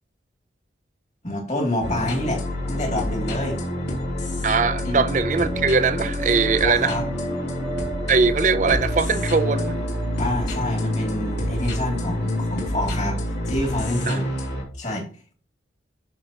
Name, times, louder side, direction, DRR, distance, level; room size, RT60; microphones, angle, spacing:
voice 1, 1.2-3.6 4.8-5.0 6.6-7.0 10.2-14.3 14.8-15.1, left 1 dB, 40° left, 2.5 m, -27 dB
sound 1, 1.8-14.6, left 1 dB, 65° left, 3.0 m, -27 dB
sound 2, 4.1-10.9, right 3 dB, ahead, 0.9 m, -36 dB
voice 2, 4.4-7.0 8.1-9.8 14.1-14.2, right 5 dB, 40° right, 0.5 m, -21 dB
13.0 x 4.6 x 2.9 m
head